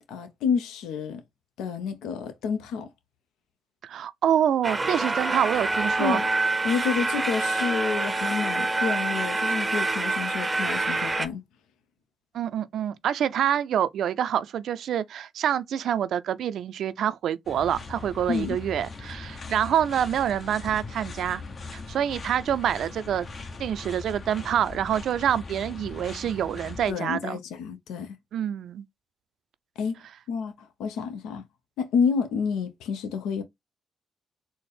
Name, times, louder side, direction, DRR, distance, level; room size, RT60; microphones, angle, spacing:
voice 1, 0.1-1.2 1.6-2.9 6.0-6.3 6.6-11.4 18.3-18.6 26.9-28.2 29.8-30.0 30.3-31.4 31.8-33.4, left 6 dB, 85° left, 0.5 m, -29 dB
voice 2, 3.8-6.2 12.3-21.4 21.7-23.3 23.6-27.4 28.3-28.8, right 9 dB, 70° right, 0.3 m, -26 dB
sound 1, 4.6-11.3, right 3 dB, 25° right, 0.6 m, -26 dB
sound 2, 17.4-26.9, left 4 dB, 50° left, 0.9 m, -40 dB
4.2 x 2.0 x 3.3 m
supercardioid pair, 55°, 0 cm